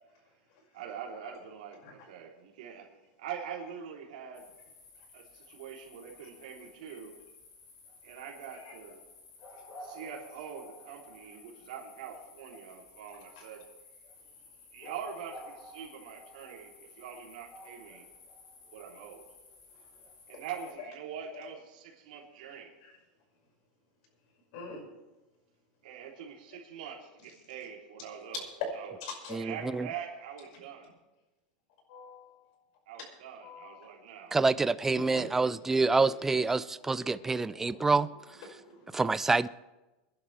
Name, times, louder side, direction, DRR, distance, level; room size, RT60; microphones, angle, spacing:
voice 1, 0.7-2.9 3.2-4.5 5.1-7.1 8.0-9.0 9.8-13.7 14.7-18.1 18.7-19.3 20.3-22.7 25.8-28.4 28.7-29.0 29.4-30.9 32.9-34.4, right 7 dB, 80° right, 3.4 m, -44 dB
sound 1, 4.3-20.7, left 2 dB, 40° left, 4.2 m, -53 dB
voice 2, 24.5-24.9 29.0-29.4 31.9-32.6 33.4-33.9 34.8-38.0 38.5-39.0, left 4 dB, 60° left, 5.7 m, -47 dB
voice 3, 29.3-29.9 34.3-38.1 38.9-39.5, right 3 dB, 10° right, 0.3 m, -27 dB
25.0 x 11.0 x 3.4 m
supercardioid pair, 155°, 4 cm